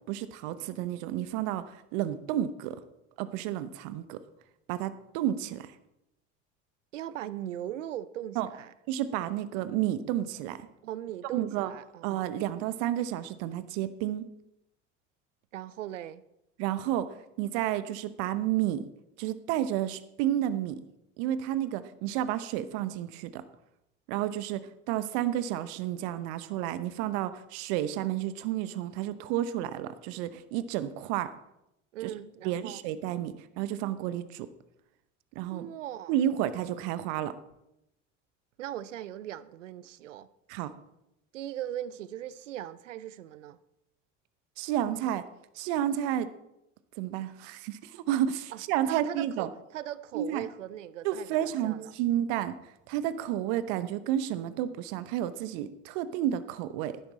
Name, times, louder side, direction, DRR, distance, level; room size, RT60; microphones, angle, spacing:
voice 1, 0.0-2.8 3.2-4.2 4.7-5.7 8.4-8.5 8.9-10.7 11.3-11.7 12.0-14.3 16.6-18.8 19.2-20.8 21.2-23.4 24.1-31.3 32.0-32.1 32.4-34.5 35.3-35.7 36.1-37.3 40.5-40.7 44.6-45.3 45.5-46.3 47.0-49.5 50.1-50.5 51.0-52.6 52.9-57.0, right 11 dB, 65° right, 0.9 m, -31 dB
voice 2, 6.9-8.7 10.8-12.1 15.5-16.2 31.9-32.8 35.5-36.1 38.6-40.3 41.3-43.6 48.5-48.6 48.9-51.9, right 12 dB, 85° right, 0.6 m, -39 dB
12.0 x 10.5 x 4.2 m
hypercardioid pair, 70°, 36 cm